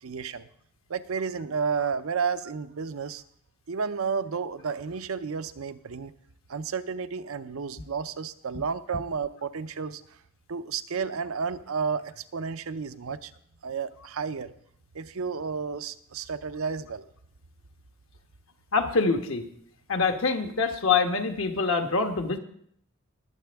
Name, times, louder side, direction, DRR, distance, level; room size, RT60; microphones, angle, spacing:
voice 1, 0.0-0.5 0.9-3.2 3.7-6.1 6.5-10.0 10.5-13.3 13.6-14.5 14.9-17.1, right 5 dB, 75° right, 12 dB, 0.6 m, -32 dB
voice 2, 18.7-19.4 19.9-22.4, left 4 dB, 70° left, 5 dB, 1.2 m, -25 dB
20.5 x 7.6 x 3.5 m, 0.67 s
head